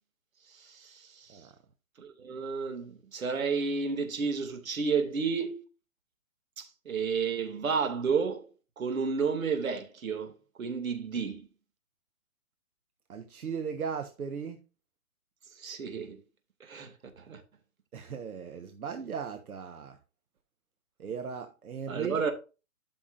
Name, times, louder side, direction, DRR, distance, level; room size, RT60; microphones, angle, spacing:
voice 1, 0.5-1.4 2.0-5.6 6.6-8.5 8.8-10.3 10.6-11.5 15.6-16.2 16.6-17.4 21.9-22.3, right 5 dB, 70° right, 2.5 m, -31 dB
voice 2, 13.1-14.6 17.9-20.0 21.0-22.3, right 6 dB, 90° right, 1.3 m, -37 dB
13.0 x 6.0 x 2.6 m
hypercardioid pair, 150°, 42 cm